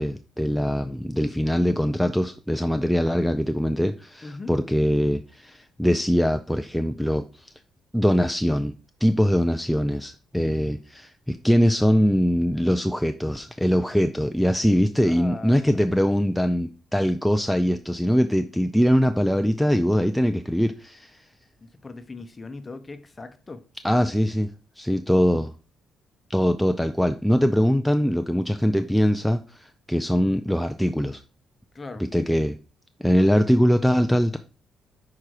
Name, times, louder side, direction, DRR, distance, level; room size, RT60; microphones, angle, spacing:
voice 1, 0.0-7.5 7.9-8.7 9.0-21.2 23.8-25.5 26.3-31.2 32.0-32.6 33.0-34.4, equal, ahead, 0.4 m, -22 dB
voice 2, 15.0-15.9 21.6-23.6 31.7-32.1, left 3 dB, 25° left, 0.9 m, -39 dB
5.8 x 4.9 x 4.9 m
cardioid pair, 90°, 0 cm